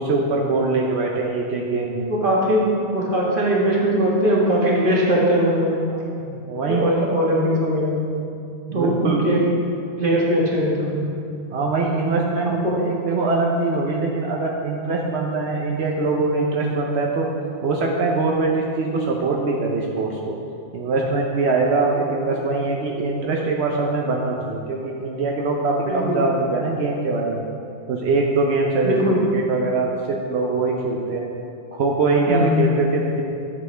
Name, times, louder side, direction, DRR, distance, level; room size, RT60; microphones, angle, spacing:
voice 1, 0.0-2.1 6.2-6.9 8.7-9.3 11.5-17.3 17.6-20.3 20.7-27.5 27.9-31.3 31.7-33.4, right 3 dB, 90° right, -1 dB, 1.0 m, -23 dB
voice 2, 2.1-2.7 2.9-6.0 6.7-8.1 8.7-9.4 10.0-11.1 12.4-12.9 21.9-22.0 25.9-26.2 28.8-29.2 32.3-32.6, equal, 55° right, -4 dB, 1.7 m, -20 dB
11.0 x 7.3 x 3.3 m, 2.5 s
omnidirectional pair, 1.1 m